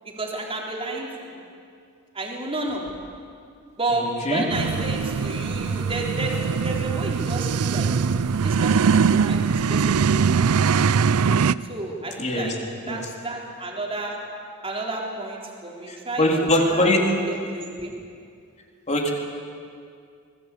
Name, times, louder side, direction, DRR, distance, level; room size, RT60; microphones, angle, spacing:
voice 1, 0.0-1.1 2.1-2.9 3.8-7.9 8.4-10.4 11.7-12.5 12.9-14.2 14.6-16.2 16.6-17.9, right 2 dB, 25° right, -1 dB, 3.8 m, -31 dB
voice 2, 4.0-4.4 12.2-12.5 12.9-13.0 16.2-17.1 18.9-19.1, left 1 dB, 30° left, 1 dB, 3.5 m, -21 dB
sound 1, 4.5-11.5, right 6 dB, 80° right, 0.5 m, -21 dB
25.0 x 20.0 x 8.5 m, 2.3 s
head